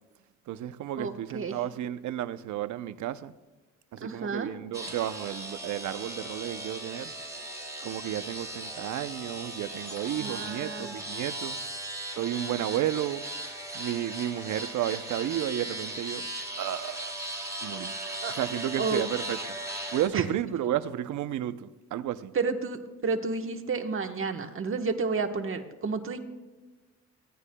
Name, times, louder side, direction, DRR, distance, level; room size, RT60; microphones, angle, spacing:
voice 1, 0.5-3.3 3.9-7.1 7.8-11.6 12.1-13.3 13.7-16.3 16.6-17.1 17.6-17.9 18.3-19.4 19.9-22.3, right 12 dB, 75° right, 0.7 m, -32 dB
voice 2, 1.0-1.6 4.0-4.5 10.2-10.9 18.2-18.3 18.8-19.0 20.1-20.3 22.3-26.2, right 4 dB, 45° right, 1.2 m, -31 dB
sound 1, 4.7-20.1, right 1 dB, 10° right, 3.6 m, -38 dB
22.5 x 16.5 x 2.3 m
cardioid pair, 90°, 30 cm